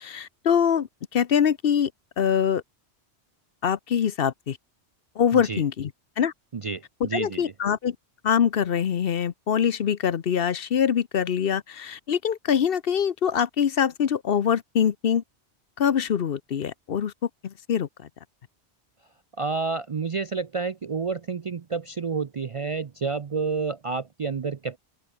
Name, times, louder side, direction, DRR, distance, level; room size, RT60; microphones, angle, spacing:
voice 1, 0.0-1.9 2.2-2.6 3.6-4.6 5.2-5.9 6.2-6.3 7.0-8.0 8.2-15.2 15.8-17.1 17.4-18.1, left 8 dB, 60° left, 1.0 m, -24 dB
voice 2, 5.3-5.6 6.5-7.5 19.4-24.8, right 4 dB, 40° right, 0.5 m, -29 dB
open air
omnidirectional pair, 1.1 m